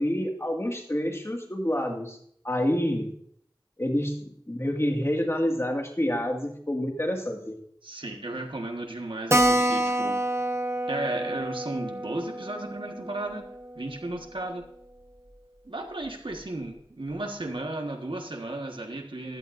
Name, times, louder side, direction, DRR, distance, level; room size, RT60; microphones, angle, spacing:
voice 1, 0.0-2.2 2.4-3.1 3.8-7.6, equal, 30° left, 2 dB, 2.1 m, -28 dB
voice 2, 7.8-10.2 10.9-13.5 13.7-14.6 15.6-19.4, right 2 dB, 90° right, 3 dB, 1.6 m, -34 dB
Keyboard (musical), 9.3-14.4 14.6-14.7 15.0-15.1 15.4-15.5 16.0-16.4, right 1 dB, 30° right, 1.0 m, -28 dB
15.0 x 11.5 x 2.7 m, 0.67 s
wide cardioid pair, 40°, 8 cm